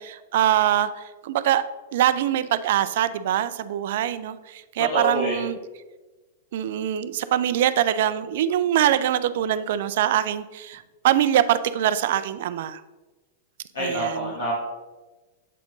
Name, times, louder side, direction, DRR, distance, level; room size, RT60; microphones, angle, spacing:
voice 1, 0.0-1.6 1.9-5.6 6.5-12.8 13.8-14.3, right 11 dB, 60° right, 14 dB, 0.3 m, -23 dB
voice 2, 4.9-5.4 13.7-14.5, equal, 70° left, -6 dB, 1.6 m, -26 dB
7.3 x 4.3 x 3.8 m, 1.2 s
figure-of-eight pair, 100°, 0 cm